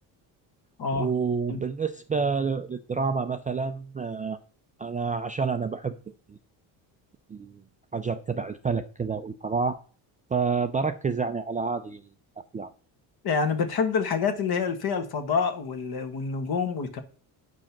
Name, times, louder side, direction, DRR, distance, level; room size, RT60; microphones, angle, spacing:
voice 1, 0.9-4.4 4.8-5.9 6.3-6.4 7.3-7.6 7.9-9.8 10.3-12.0 12.5-12.7, right 5 dB, 20° right, 0.3 m, -28 dB
voice 2, 13.2-17.0, left 5 dB, 50° left, 1.4 m, -27 dB
8.6 x 5.1 x 5.9 m
cardioid pair, 100°, 46 cm